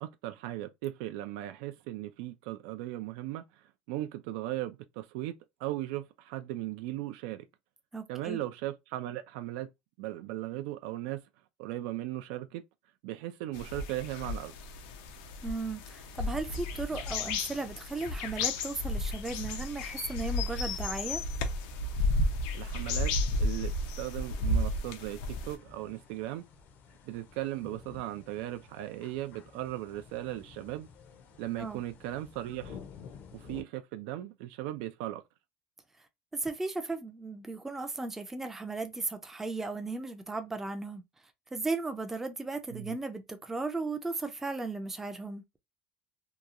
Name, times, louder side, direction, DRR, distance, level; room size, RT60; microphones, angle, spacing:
voice 1, 0.0-7.5 8.1-9.7 10.0-11.2 11.6-12.6 13.0-14.5 22.5-23.1 23.4-26.4 27.0-30.9 31.4-32.8 33.3-35.2 42.7-43.0, right 15 dB, 80° right, 0.4 m, -37 dB
voice 2, 7.9-8.4 15.4-21.2 31.6-31.8 36.3-41.0 41.5-45.4, right 3 dB, 10° right, 0.4 m, -36 dB
Australian forest birds, 13.5-25.6, left 2 dB, 90° left, 0.5 m, -33 dB
sound 1, 16.9-33.6, left 6 dB, 45° left, 0.5 m, -54 dB
2.8 x 2.3 x 2.4 m
cardioid pair, 155°, 4 cm